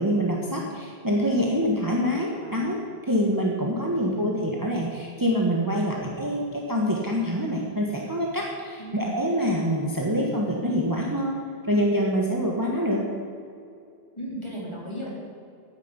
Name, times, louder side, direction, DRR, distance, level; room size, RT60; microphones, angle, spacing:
voice 1, 0.0-11.3 11.7-13.1, equal, 20° right, -1 dB, 1.5 m, -25 dB
voice 2, 4.0-4.3 5.9-6.1 8.8-9.1 14.2-15.1, equal, 25° left, -5 dB, 4.0 m, -37 dB
9.7 x 9.3 x 9.8 m, 2.4 s
omnidirectional pair, 1.1 m